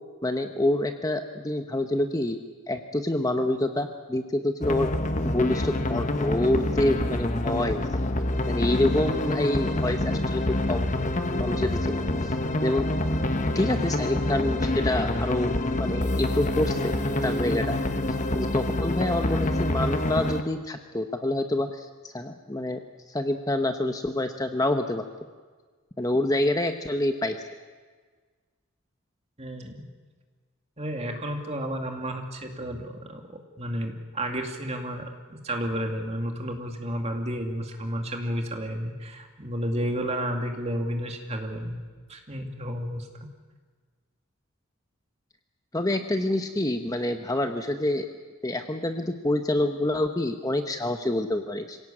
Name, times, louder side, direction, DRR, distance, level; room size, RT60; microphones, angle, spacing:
voice 1, 0.2-2.4 2.7-4.9 5.2-7.8 8.5-10.0 10.3-10.4 10.7-11.0 11.3-12.4 12.6-12.9 13.5-17.0 17.2-17.8 18.3-22.8 23.1-25.0 26.0-27.4 45.7-48.1 48.4-51.8, left 1 dB, 15° left, 7 dB, 0.9 m, -27 dB
sound 1, 4.6-20.4, left 1 dB, 35° left, 1.3 m, -27 dB
voice 2, 29.4-29.8 30.8-41.8 42.1-43.3, equal, 30° right, 4 dB, 2.5 m, -32 dB
26.0 x 17.0 x 8.6 m, 1.5 s
head